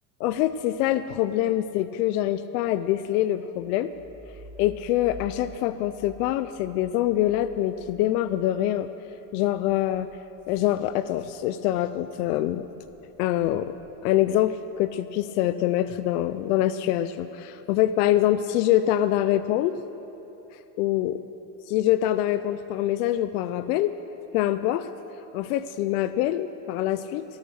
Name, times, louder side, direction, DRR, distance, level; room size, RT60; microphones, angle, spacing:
voice 1, 0.2-3.9 4.6-8.9 9.3-10.1 10.5-12.6 13.2-13.7 14.0-19.8 20.8-21.2 21.7-23.9 24.3-24.9 25.3-27.2, left 13 dB, 85° left, 13 dB, 0.6 m, -24 dB
sound 1, 3.5-11.8 12.2-14.8, left 2 dB, 5° right, 1.7 m, -50 dB
20.0 x 7.3 x 6.4 m, 3.0 s
supercardioid pair, 145°, 45 cm